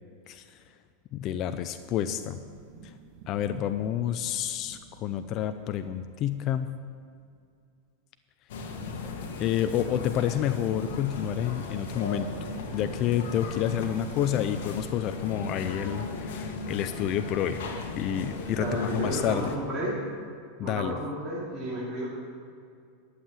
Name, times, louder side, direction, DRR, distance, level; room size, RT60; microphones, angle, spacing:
voice 1, 0.3-0.6 1.1-2.4 2.8-2.9 3.3-6.7 9.4-12.3 12.7-17.6 18.0-19.5 20.6-21.0, left 10 dB, 40° left, 10 dB, 0.5 m, -29 dB
sound 1, 2.1-7.1 10.1-14.4, right 3 dB, 55° right, 1.5 m, -48 dB
sound 2, 8.5-19.6, left 3 dB, 75° left, 1.6 m, -37 dB
voice 2, 18.6-19.9 20.6-22.1, right 1 dB, 15° right, -10 dB, 2.9 m, -32 dB
11.5 x 7.4 x 7.6 m, 2.3 s
supercardioid pair, 145°, 0 cm